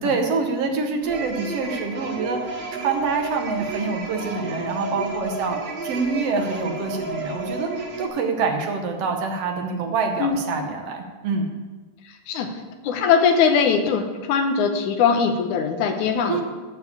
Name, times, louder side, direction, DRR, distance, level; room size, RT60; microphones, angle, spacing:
voice 1, 0.0-2.4 2.7-5.6 5.8-7.7 8.0-11.5 16.3-16.4, right 4 dB, 65° right, 4 dB, 1.8 m, -26 dB
sound 1, 1.0-8.1, right 3 dB, 30° right, 2.4 m, -32 dB
voice 2, 12.8-16.4, left 6 dB, 75° left, 6 dB, 2.4 m, -20 dB
14.0 x 4.9 x 8.1 m, 1.3 s
omnidirectional pair, 3.6 m